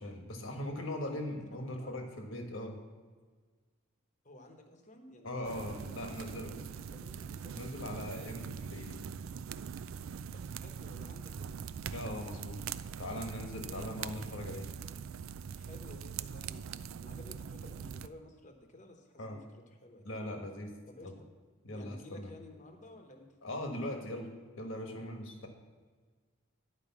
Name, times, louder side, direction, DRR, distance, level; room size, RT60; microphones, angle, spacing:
voice 1, 0.0-2.8 5.2-6.5 7.5-9.0 11.9-14.7 19.2-19.4 20.0-20.7 21.0-21.1 21.6-22.3 23.4-24.3 24.6-25.5, left 1 dB, 65° left, 3 dB, 1.4 m, -40 dB
voice 2, 1.5-2.0 4.2-6.6 6.9-7.7 10.3-11.7 13.7-14.1 15.5-20.0 20.9-21.1 21.7-23.3, left 1 dB, 35° left, 4 dB, 1.0 m, -54 dB
sound 1, 5.4-18.1, right 7 dB, 70° right, 0.3 m, -42 dB
11.0 x 5.0 x 7.1 m, 1.5 s
head